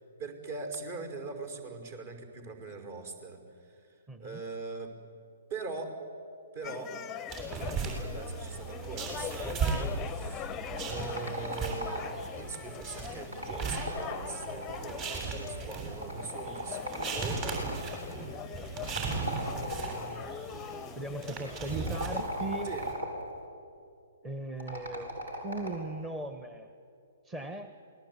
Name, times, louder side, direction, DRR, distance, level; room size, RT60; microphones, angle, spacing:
voice 1, 0.0-4.9 5.5-6.0 6.5-6.9 7.8-12.1 12.3-17.4 18.7-20.7 22.6-22.9, right 4 dB, 50° right, 6 dB, 5.5 m, -42 dB
voice 2, 4.1-4.4 21.0-22.7 24.2-25.2 25.4-26.7 27.2-27.7, right 2 dB, 15° right, 8 dB, 1.3 m, -38 dB
sound 1, 6.6-22.2, left 9 dB, 20° left, 0.7 m, -43 dB
sound 2, 7.3-22.9, right 4 dB, 30° right, 8.0 m, -38 dB
sound 3, 10.8-12.4 13.2-15.0 16.0-17.8 18.9-20.2 21.8-23.3 24.6-25.9, right 1 dB, 80° right, 7.4 m, -38 dB
28.5 x 20.0 x 9.9 m, 2.4 s
figure-of-eight pair, 125°, 0 cm